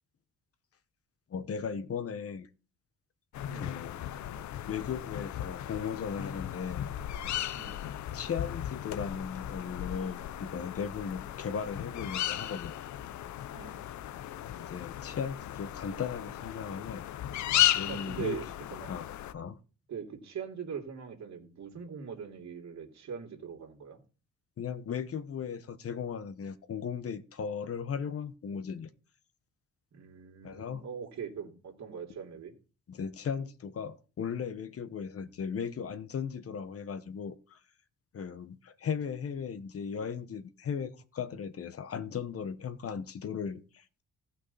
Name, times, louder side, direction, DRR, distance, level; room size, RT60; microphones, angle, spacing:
voice 1, 1.3-2.5 3.5-4.0 4.7-6.9 8.1-12.7 14.5-17.1 17.7-18.4 18.9-19.6 24.6-28.9 30.4-30.9 32.9-37.6 38.1-44.0, left 6 dB, 50° left, 1.1 m, -37 dB
sound 1, 3.3-19.3, left 12 dB, 70° left, 0.7 m, -35 dB
voice 2, 3.5-3.8 7.5-7.8 13.5-13.8 17.9-18.4 18.7-18.9 19.9-24.0 29.9-32.5, right 7 dB, 65° right, 2.8 m, -41 dB
15.5 x 5.9 x 4.1 m
cardioid pair, 90°, 30 cm